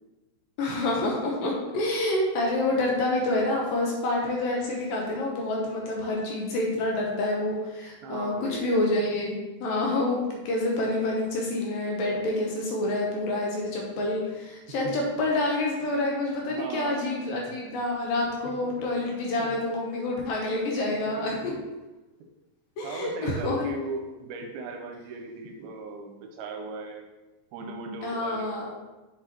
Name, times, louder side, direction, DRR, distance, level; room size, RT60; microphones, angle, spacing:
voice 1, 0.6-21.5 22.8-23.7 28.0-28.7, left 2 dB, 70° left, -1 dB, 2.4 m, -28 dB
voice 2, 8.0-8.8 14.8-14.9 16.5-17.0 17.5-17.6 18.5-18.9 19.4-19.6 21.0-21.5 22.8-27.1 27.5-28.5, right 3 dB, 80° right, 4 dB, 2.4 m, -37 dB
7.4 x 6.7 x 3.0 m, 1.1 s
omnidirectional pair, 4.6 m